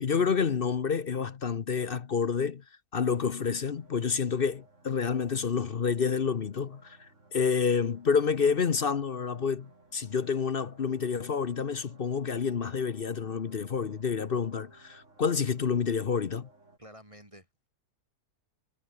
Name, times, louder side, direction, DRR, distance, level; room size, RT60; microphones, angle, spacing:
voice 1, 0.0-2.6 2.9-16.5, left 6 dB, 45° left, 0.9 m, -29 dB
sound 1, 3.4-16.8, right 2 dB, 50° right, 4.8 m, -59 dB
voice 2, 16.8-17.7, equal, 20° right, 4.2 m, -51 dB
omnidirectional pair, 1.7 m